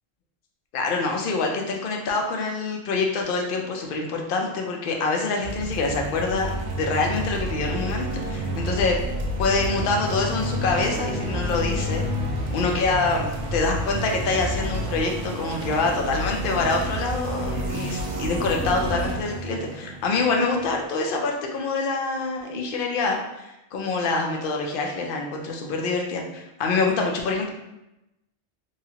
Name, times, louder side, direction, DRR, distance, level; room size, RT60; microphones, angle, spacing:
voice 1, 0.7-6.5 6.8-9.0 9.4-12.1 12.5-27.5, left 3 dB, 65° left, 1 dB, 0.5 m, -26 dB
sound 1, 5.4-20.8, equal, 70° right, 0.9 m, -29 dB
2.9 x 2.3 x 2.8 m, 0.92 s
omnidirectional pair, 1.3 m